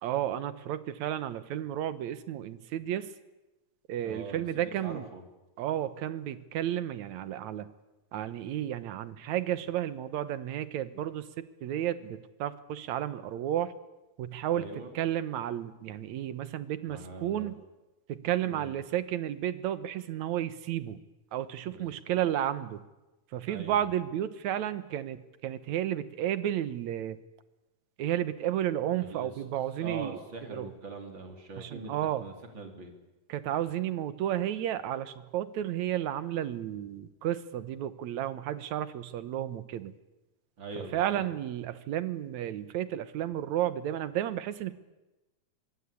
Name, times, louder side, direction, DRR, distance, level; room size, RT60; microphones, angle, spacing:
voice 1, 0.0-3.1 3.9-5.1 5.6-7.7 8.1-13.7 14.2-17.6 18.1-21.0 21.3-22.8 23.3-27.2 28.0-30.2 30.5-30.7 31.6-32.2 33.3-40.0 40.9-44.7, right 11 dB, 75° right, 13 dB, 2.5 m, -32 dB
voice 2, 4.0-5.2 14.5-14.9 16.8-17.5 18.5-18.8 21.7-22.0 23.5-23.9 29.0-29.3 29.8-32.9 40.6-41.2, right 3 dB, 40° right, 4 dB, 4.2 m, -42 dB
25.0 x 22.5 x 8.5 m, 1.0 s
omnidirectional pair, 3.4 m